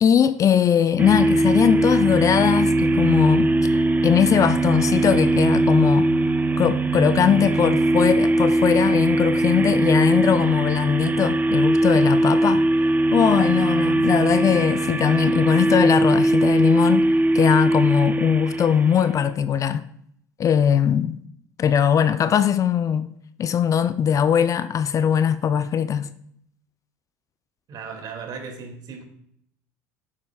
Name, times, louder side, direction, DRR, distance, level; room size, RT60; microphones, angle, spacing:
voice 1, 0.0-3.5 4.0-6.1 6.6-12.7 13.1-19.9 20.4-21.2 21.6-23.1 23.4-26.1, left 8 dB, 40° left, 0.5 m, -20 dB
sound 1, 1.0-19.3, right 2 dB, 20° right, 0.6 m, -20 dB
voice 2, 27.7-29.0, right 5 dB, 50° right, 2.2 m, -36 dB
9.6 x 7.6 x 2.3 m
hypercardioid pair, 70°, 9 cm